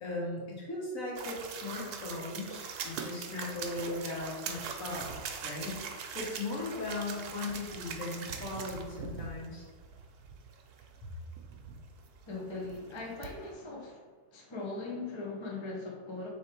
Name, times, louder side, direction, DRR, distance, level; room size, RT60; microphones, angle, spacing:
voice 1, 0.0-5.1 5.4-9.6, left 2 dB, 60° left, -5 dB, 1.6 m, -38 dB
sound 1, 1.1-13.5, right 6 dB, 85° right, 1.1 m, -42 dB
voice 2, 12.3-14.0 14.3-16.3, left 3 dB, 30° left, -2 dB, 0.5 m, -40 dB
3.7 x 3.2 x 4.4 m, 1.4 s
omnidirectional pair, 1.6 m